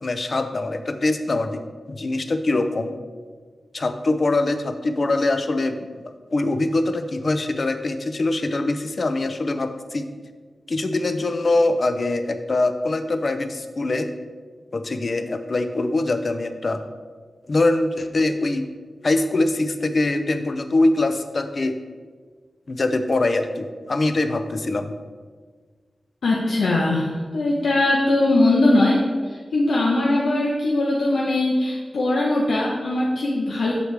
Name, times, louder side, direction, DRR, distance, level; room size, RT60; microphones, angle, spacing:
voice 1, 0.0-1.6 1.9-3.0 3.7-5.8 6.3-10.1 10.7-14.1 14.7-16.8 17.5-18.7 19.0-21.8 22.7-24.9, left 2 dB, 45° left, 8 dB, 0.5 m, -23 dB
voice 2, 26.2-33.7, left 2 dB, 90° left, -4 dB, 0.9 m, -20 dB
7.7 x 6.5 x 3.3 m, 1.5 s
wide cardioid pair, 120°, 0 cm